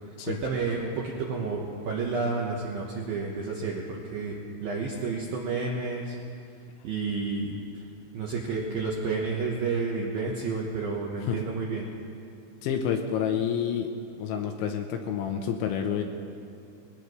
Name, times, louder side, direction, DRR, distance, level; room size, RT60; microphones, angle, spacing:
voice 1, 0.0-6.2 6.8-7.9 8.1-11.9, right 4 dB, 80° right, -2 dB, 2.1 m, -31 dB
voice 2, 12.6-13.9 14.2-16.0, left 8 dB, 80° left, 4 dB, 2.9 m, -28 dB
21.5 x 18.0 x 3.2 m, 2.6 s
omnidirectional pair, 5.9 m